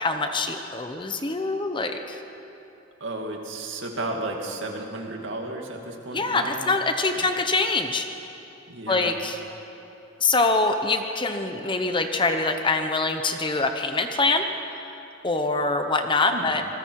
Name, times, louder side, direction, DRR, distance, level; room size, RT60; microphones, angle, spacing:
voice 1, 0.0-2.2 6.1-8.1 8.9-9.4 10.2-14.4 15.2-16.6, left 3 dB, 25° left, 6 dB, 1.0 m, -24 dB
voice 2, 3.0-6.7 7.2-7.3 8.7-9.2 16.3-16.5, right 2 dB, 65° right, 1 dB, 2.5 m, -33 dB
27.0 x 20.5 x 4.8 m, 2.9 s
head